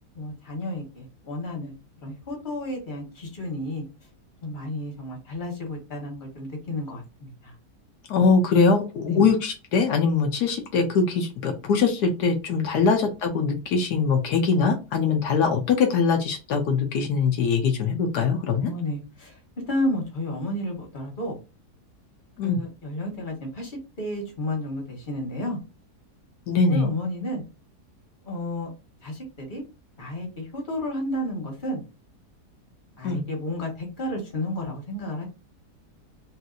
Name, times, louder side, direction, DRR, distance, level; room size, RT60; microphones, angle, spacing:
voice 1, 0.1-1.7 2.0-3.8 4.4-7.5 9.1-9.3 12.7-12.8 18.6-19.4 19.7-21.3 22.4-25.6 26.7-27.4 28.3-28.7 29.0-29.6 30.0-31.8 33.0-35.3, left 1 dB, 30° left, 0 dB, 1.4 m, -32 dB
voice 2, 8.1-18.7 22.4-22.6 26.5-26.9 33.0-33.2, left 5 dB, 80° left, 4 dB, 1.2 m, -22 dB
3.1 x 2.8 x 2.4 m, 0.30 s
omnidirectional pair, 1.7 m